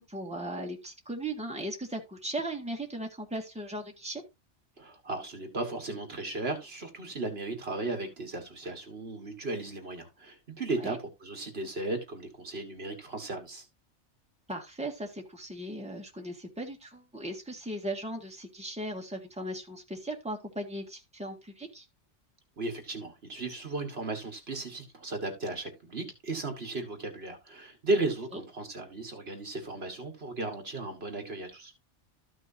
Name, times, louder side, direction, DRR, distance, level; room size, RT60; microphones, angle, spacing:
voice 1, 0.0-4.2 10.8-11.0 14.5-21.9 28.3-28.4, right 1 dB, 5° right, 2.0 m, -37 dB
voice 2, 4.8-13.6 22.6-31.7, right 2 dB, 60° right, 1.9 m, -35 dB
13.5 x 6.1 x 2.7 m
omnidirectional pair, 1.2 m